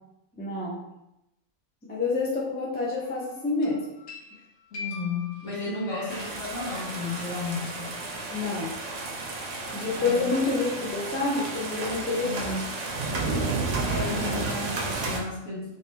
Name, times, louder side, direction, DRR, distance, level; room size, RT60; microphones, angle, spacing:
voice 1, 0.4-0.8 1.8-3.8 5.9-6.1 8.3-8.7 9.7-12.6 14.1-14.4, left 3 dB, 10° left, -5 dB, 0.5 m, -28 dB
sound 1, 3.0-3.3 3.6-8.0, left 4 dB, 85° left, 1.3 m, -44 dB
voice 2, 4.7-7.9 9.9-10.2 12.2-12.5 13.8-15.8, left 3 dB, 70° left, -6 dB, 1.5 m, -33 dB
sound 2, 6.1-15.2, right 3 dB, 65° right, 0.9 m, -32 dB
3.4 x 2.9 x 2.9 m, 0.87 s
omnidirectional pair, 1.4 m